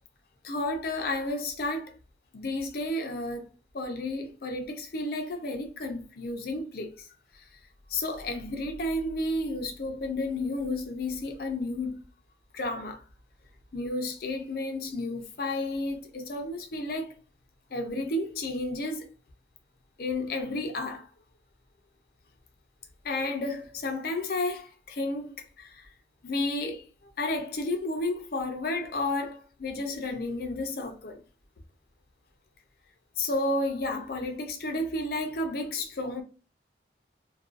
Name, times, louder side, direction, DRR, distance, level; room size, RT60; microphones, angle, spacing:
voice 1, 0.4-1.9 2.3-3.5 3.7-7.1 7.9-12.0 12.5-13.0 13.7-17.1 17.7-19.1 20.0-21.1 23.0-25.9 26.2-26.8 27.2-31.2 33.2-36.2, left 2 dB, 50° left, 0.5 m, -32 dB
2.5 x 2.3 x 2.4 m
head